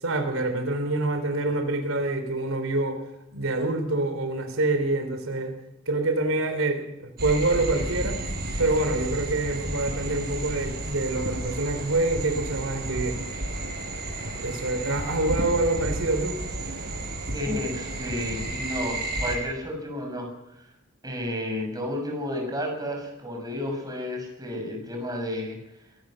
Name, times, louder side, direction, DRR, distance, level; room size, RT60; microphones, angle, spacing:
voice 1, 0.0-3.0 3.3-5.5 5.9-8.2 8.6-13.2 14.4-16.4, right 2 dB, 80° right, 6 dB, 3.5 m, -26 dB
sound 1, 7.2-19.4, right 1 dB, 50° right, 5.5 m, -32 dB
voice 2, 17.3-20.3 21.0-25.6, left 1 dB, 20° right, 2 dB, 6.0 m, -31 dB
23.0 x 18.0 x 6.4 m, 0.89 s
head